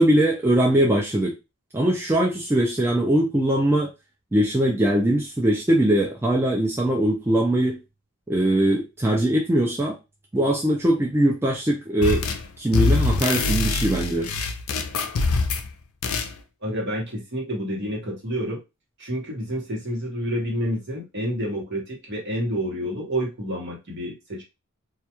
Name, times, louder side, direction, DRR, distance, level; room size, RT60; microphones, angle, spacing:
voice 1, 0.0-1.3 1.7-3.9 4.3-7.8 8.3-10.0 10.3-12.2 12.6-14.3, right 1 dB, 10° right, -2 dB, 0.3 m, -21 dB
sound 1, 12.0-12.5 12.7-15.7 16.0-16.3, left 4 dB, 70° left, 0.4 m, -24 dB
voice 2, 16.6-18.6 19.0-24.4, equal, 50° right, -2 dB, 1.0 m, -29 dB
2.3 x 2.2 x 2.8 m, 0.25 s
head